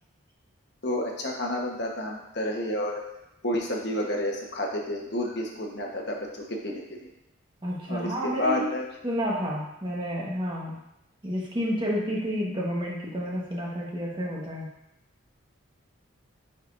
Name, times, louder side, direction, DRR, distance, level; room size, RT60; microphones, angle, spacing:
voice 1, 0.8-3.0 3.4-7.0 7.9-8.9, left 1 dB, 55° left, 0 dB, 1.2 m, -30 dB
voice 2, 7.6-8.7 9.0-10.8 11.2-14.7, equal, 25° right, -3 dB, 1.4 m, -30 dB
10.0 x 5.2 x 2.7 m, 0.84 s
head